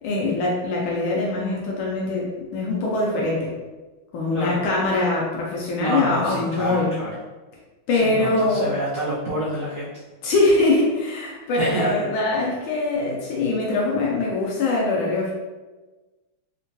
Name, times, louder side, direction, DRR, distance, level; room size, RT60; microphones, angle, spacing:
voice 1, 0.0-3.5 4.1-6.9 7.9-8.7 10.2-15.3, left 2 dB, 85° left, -3 dB, 1.4 m, -23 dB
voice 2, 4.3-4.7 5.8-7.1 8.0-9.9 11.6-12.0, right 1 dB, 80° right, -9 dB, 0.7 m, -28 dB
3.7 x 2.1 x 2.7 m, 1.2 s
omnidirectional pair, 2.2 m